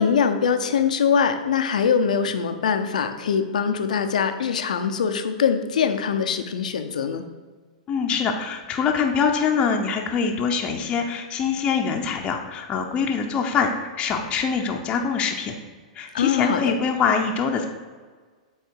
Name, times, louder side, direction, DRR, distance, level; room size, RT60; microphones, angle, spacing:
voice 1, 0.0-7.2 16.1-16.7, left 6 dB, 85° left, 8 dB, 0.6 m, -22 dB
voice 2, 7.9-15.6 15.9-17.6, left 6 dB, 25° left, 2 dB, 0.7 m, -24 dB
8.1 x 3.2 x 4.6 m, 1.4 s
hypercardioid pair, 130°, 4 cm